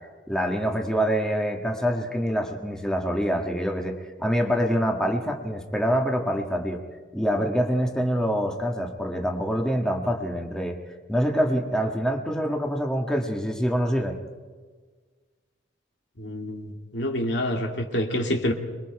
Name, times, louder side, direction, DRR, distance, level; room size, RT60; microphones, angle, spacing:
voice 1, 0.3-6.8 7.1-10.8 11.1-14.2, equal, 5° left, 1 dB, 1.6 m, -25 dB
voice 2, 16.2-18.5, left 1 dB, 65° left, 2 dB, 2.4 m, -27 dB
27.0 x 22.0 x 4.8 m, 1.5 s
head